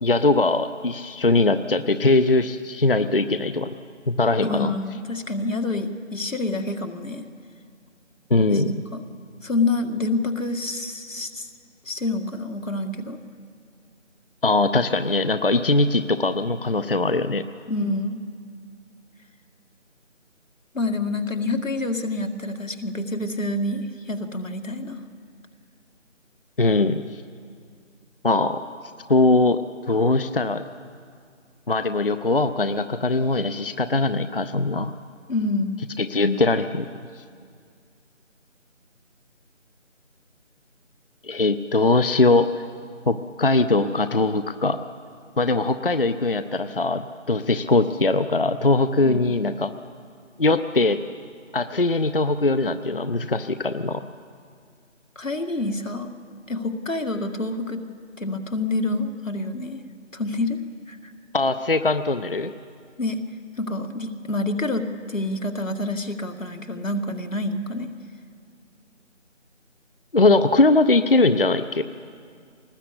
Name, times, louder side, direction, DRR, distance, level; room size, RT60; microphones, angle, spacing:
voice 1, 0.0-3.8 4.1-4.8 8.3-8.8 14.4-17.4 26.6-27.2 28.2-28.6 29.1-29.6 29.9-30.6 31.7-34.9 36.0-36.9 41.2-42.6 43.1-44.8 45.4-47.0 47.3-49.7 50.4-51.0 51.5-54.0 61.3-62.5 70.1-71.8, left 2 dB, 45° left, 11 dB, 0.6 m, -21 dB
voice 2, 4.4-7.2 8.5-9.0 9.4-11.5 11.9-13.2 17.7-18.2 20.7-25.0 35.3-35.8 55.2-56.1 56.5-57.8 58.2-59.8 60.1-60.6 60.9-61.1 63.0-63.2 63.6-67.9, left 2 dB, 85° left, 4 dB, 2.1 m, -27 dB
21.0 x 19.0 x 8.4 m, 2.2 s
figure-of-eight pair, 165°, 38 cm